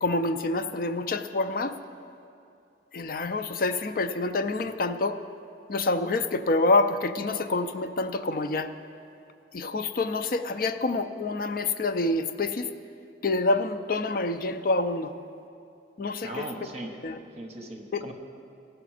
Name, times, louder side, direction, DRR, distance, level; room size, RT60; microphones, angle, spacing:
voice 1, 0.0-1.8 2.9-5.2 5.7-8.7 9.5-12.7 13.2-15.1 16.0-16.5 17.0-17.2 17.9-18.1, left 2 dB, 50° left, 8 dB, 0.4 m, -27 dB
voice 2, 16.2-17.0 17.4-18.1, right 1 dB, 35° right, 2 dB, 1.1 m, -38 dB
16.5 x 6.0 x 4.9 m, 2.6 s
head